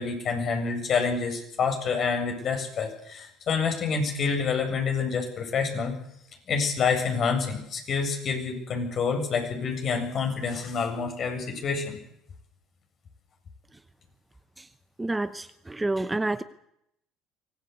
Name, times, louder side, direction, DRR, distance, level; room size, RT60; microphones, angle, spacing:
voice 1, 0.0-5.9 6.5-12.0, left 5 dB, 50° left, 4 dB, 7.7 m, -27 dB
voice 2, 15.0-16.4, right 2 dB, 15° right, 12 dB, 1.1 m, -28 dB
24.5 x 18.0 x 8.4 m, 0.76 s
supercardioid pair, 85°, 0 cm